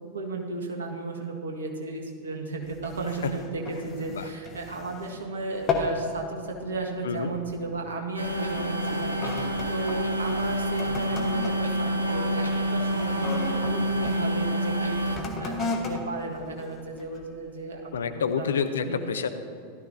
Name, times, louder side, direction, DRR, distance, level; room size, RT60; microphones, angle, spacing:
voice 1, 0.1-18.5 18.9-19.0, right 3 dB, 65° right, 2 dB, 1.7 m, -34 dB
sound 1, 2.6-5.2 5.5-6.1 6.4-6.8 7.4-7.7 8.4-14.2 15.0-17.4 17.9-18.0, left 4 dB, 30° left, 1.4 m, -35 dB
sound 2, 8.2-15.2, equal, 85° right, 1.1 m, -27 dB
voice 2, 17.9-19.3, left 6 dB, 65° left, 10 dB, 0.7 m, -28 dB
16.5 x 12.5 x 2.8 m, 2.3 s
figure-of-eight pair, 90°, 0 cm